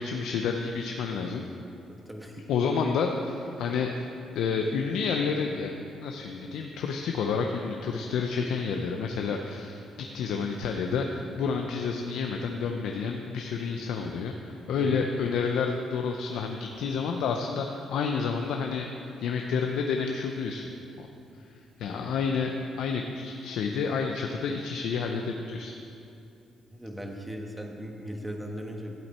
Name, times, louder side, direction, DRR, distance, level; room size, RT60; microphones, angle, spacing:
voice 1, 0.0-1.4 2.5-3.9 4.3-5.7 6.0-18.9 19.2-20.7 21.0-21.1 21.8-25.8, left 5 dB, 80° left, 3 dB, 0.6 m, -29 dB
voice 2, 1.9-2.5 14.7-15.0 21.9-22.0 26.7-29.0, equal, 10° right, 1 dB, 1.3 m, -38 dB
12.0 x 8.0 x 4.3 m, 2.6 s
cardioid pair, 90°, 0 cm